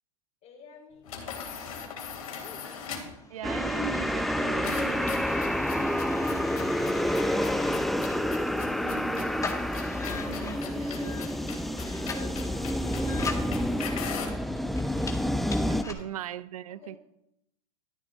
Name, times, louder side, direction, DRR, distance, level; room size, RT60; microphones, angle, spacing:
voice 1, 0.4-2.9 12.4-14.9 15.9-16.1 16.7-17.0, left 6 dB, 40° left, 3.3 m, -53 dB
sound 1, 1.0-3.2 4.6-14.4, left 6 dB, 80° left, 3.0 m, -41 dB
sound 2, 2.9-15.9, left 4 dB, 15° left, 1.8 m, -42 dB
voice 2, 3.3-5.3 8.8-9.6 10.1-11.3 15.2-15.3 15.7-17.0, right 10 dB, 80° right, 0.5 m, -40 dB
sound 3, 3.4-15.8, equal, ahead, 0.5 m, -29 dB
13.0 x 10.0 x 3.6 m
hypercardioid pair, 100°, 18 cm